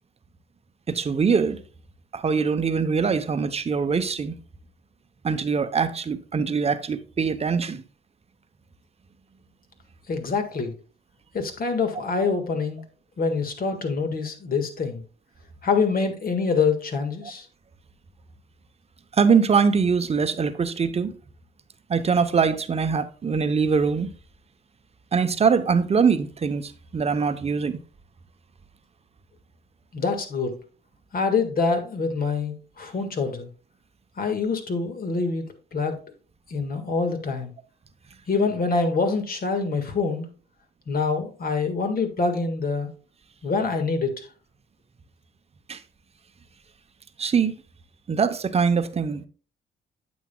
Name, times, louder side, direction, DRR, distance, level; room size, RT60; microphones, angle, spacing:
voice 1, 0.9-1.6 2.1-4.4 5.2-7.8 19.1-21.1 21.9-24.1 25.1-27.8 45.7-45.8 47.2-47.5 48.1-49.3, right 5 dB, 30° right, 0.8 m, -23 dB
voice 2, 10.1-10.7 11.3-12.8 13.2-15.0 15.6-17.5 29.9-30.6 31.1-33.5 34.2-36.1 36.5-37.5 38.3-40.3 40.9-42.9 43.4-44.3, left 4 dB, 45° left, 1.7 m, -25 dB
9.1 x 7.3 x 2.3 m
cardioid pair, 90°, 20 cm